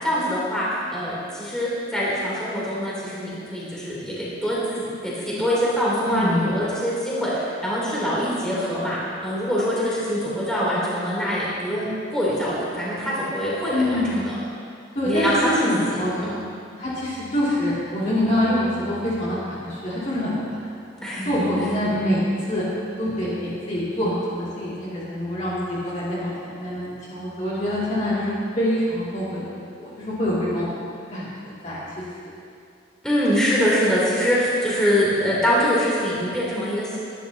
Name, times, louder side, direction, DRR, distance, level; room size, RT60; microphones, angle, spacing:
voice 1, 0.0-14.4 15.0-15.7 16.2-16.3 21.0-21.3 33.0-37.0, equal, 5° left, -9 dB, 3.6 m, -24 dB
voice 2, 6.0-6.5 13.7-14.3 14.9-16.3 16.8-20.7 21.2-22.6 23.0-30.7 31.1-32.3, left 1 dB, 35° left, -9 dB, 2.9 m, -25 dB
22.0 x 11.0 x 3.0 m, 2.4 s
head